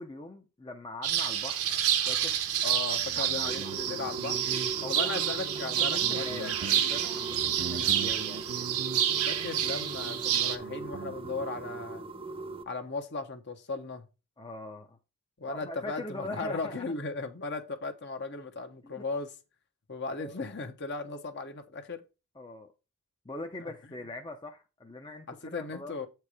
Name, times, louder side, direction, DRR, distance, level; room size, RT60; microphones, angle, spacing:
voice 1, 0.0-1.7 2.1-2.4 3.2-4.1 4.8-8.5 14.4-15.0 15.5-16.9 18.8-19.0 20.1-20.4 22.4-22.7 23.2-26.0, left 2 dB, 20° left, 0.6 m, -42 dB
sound 1, 1.0-10.6, right 10 dB, 85° right, 1.1 m, -29 dB
voice 2, 2.6-4.4 4.9-6.6 9.2-12.0 12.7-14.0 15.4-19.3 19.9-22.0 23.6-23.7 25.4-26.1, left 3 dB, 50° left, 1.1 m, -37 dB
Guitar, 3.0-11.4, right 5 dB, 70° right, 0.5 m, -43 dB
sound 2, 3.5-12.6, right 3 dB, 25° right, 0.8 m, -40 dB
8.0 x 4.6 x 4.8 m
head